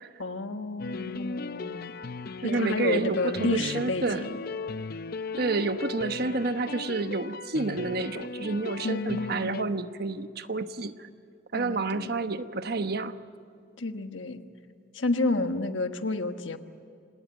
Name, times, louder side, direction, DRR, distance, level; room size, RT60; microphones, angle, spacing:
voice 1, 0.2-1.9 2.4-4.4 8.8-9.6 11.5-12.2 13.8-14.4 14.9-16.6, left 2 dB, 90° left, 8 dB, 1.4 m, -30 dB
sound 1, 0.8-9.6, left 4 dB, 55° left, 0.7 m, -37 dB
voice 2, 2.4-4.3 5.3-11.1 11.5-13.2, right 3 dB, 55° right, 10 dB, 1.1 m, -29 dB
27.0 x 19.0 x 9.1 m, 2.4 s
head